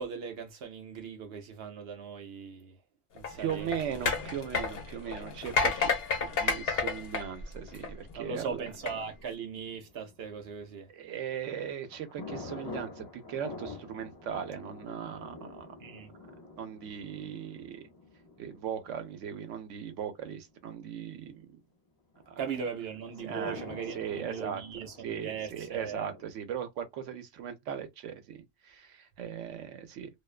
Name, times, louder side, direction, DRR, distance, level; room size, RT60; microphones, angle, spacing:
voice 1, 0.0-2.8 3.1-4.1 8.2-10.9 15.8-16.1 22.4-26.1, right 6 dB, 65° right, 0.7 m, -39 dB
sound 1, 3.2-8.1 8.7-8.9, left 4 dB, 60° left, 0.8 m, -31 dB
voice 2, 3.3-5.9 6.2-8.7 10.9-15.7 16.6-17.9 18.4-21.5 22.3-22.4 23.2-23.6 23.9-24.6 25.0-30.1, right 8 dB, 90° right, 1.0 m, -38 dB
sound 2, 8.2-10.7 11.2-20.7 22.1-26.2, left 3 dB, 30° left, 0.4 m, -48 dB
2.4 x 2.2 x 2.3 m
omnidirectional pair, 1.2 m